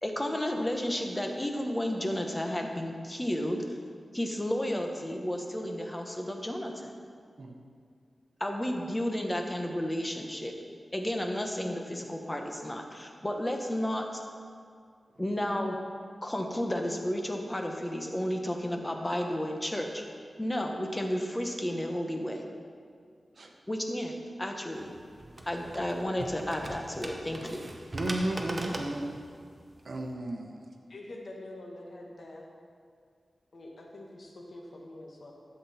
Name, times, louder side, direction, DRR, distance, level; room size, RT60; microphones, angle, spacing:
voice 1, 0.0-3.6 4.1-6.9 8.4-10.5 10.9-14.2 15.2-15.8 16.2-20.0 20.4-22.4 23.7-24.9 25.5-27.7, left 1 dB, 20° left, 3 dB, 1.3 m, -32 dB
sound 1, 24.7-30.1, right 1 dB, 35° right, 1.2 m, -41 dB
voice 2, 27.9-29.0 29.8-30.7, right 1 dB, 60° right, 2 dB, 1.2 m, -33 dB
voice 3, 30.9-32.5 33.5-35.3, left 1 dB, 65° left, -1 dB, 1.7 m, -45 dB
12.5 x 7.9 x 4.3 m, 2.2 s
wide cardioid pair, 75°, 0 cm